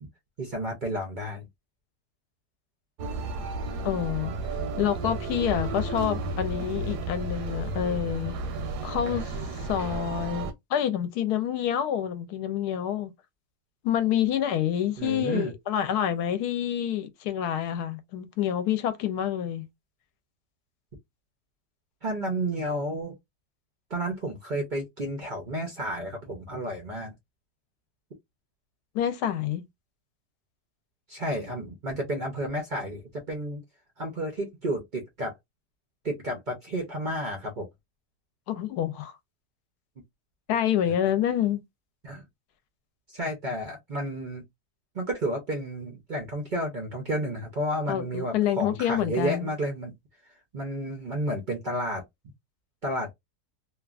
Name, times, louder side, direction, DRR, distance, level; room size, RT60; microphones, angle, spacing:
voice 1, 0.4-1.5 15.0-15.5 22.0-23.2 23.9-27.1 31.1-33.6 34.0-35.3 36.0-37.7 40.8-40.9 42.0-42.2 43.1-44.4 44.9-49.9 50.5-52.0 52.8-53.1, right 1 dB, 65° right, 0.4 m, -31 dB
sound 1, 3.0-10.5, right 3 dB, 80° right, 1.2 m, -32 dB
voice 2, 3.8-4.3 4.8-8.3 8.8-9.3 9.6-13.1 13.8-19.7 28.9-29.7 38.5-39.1 40.5-41.6 47.9-49.5, left 10 dB, 80° left, 1.1 m, -27 dB
2.9 x 2.3 x 2.4 m
omnidirectional pair, 1.7 m